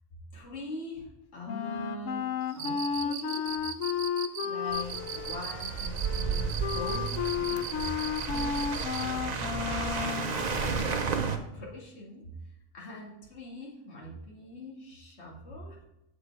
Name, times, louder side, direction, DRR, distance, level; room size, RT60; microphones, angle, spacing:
voice 1, 0.3-2.3 2.5-3.6 4.4-8.0 8.3-15.9, left 1 dB, 55° left, -4 dB, 2.4 m, -43 dB
Wind instrument woodwind instrument, 1.5-10.3, left 8 dB, 80° left, 1.0 m, -33 dB
Cricket, 2.5-9.1, right 9 dB, 90° right, 1.1 m, -38 dB
sound 1, 4.7-11.4, right 5 dB, 40° right, 0.7 m, -33 dB
8.1 x 7.2 x 4.7 m, 0.90 s
omnidirectional pair, 1.4 m